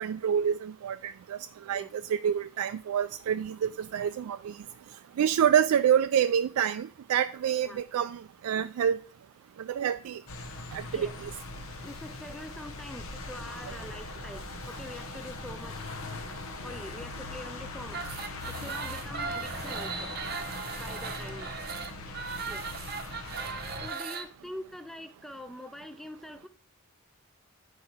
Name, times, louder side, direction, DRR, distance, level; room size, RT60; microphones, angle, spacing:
voice 1, 0.0-1.4 1.7-4.6 5.2-9.0 9.7-10.2 10.7-11.3, right 8 dB, 80° right, 0.3 m, -27 dB
sound 1, 10.3-23.9, left 3 dB, 70° left, 0.9 m, -41 dB
voice 2, 10.9-11.2 11.8-16.0 16.6-18.1 18.5-20.1 20.7-21.5 22.4-22.7 23.8-26.5, left 1 dB, ahead, 0.4 m, -44 dB
sound 2, 17.9-24.3, right 5 dB, 45° right, 0.7 m, -38 dB
9.4 x 4.7 x 4.2 m
head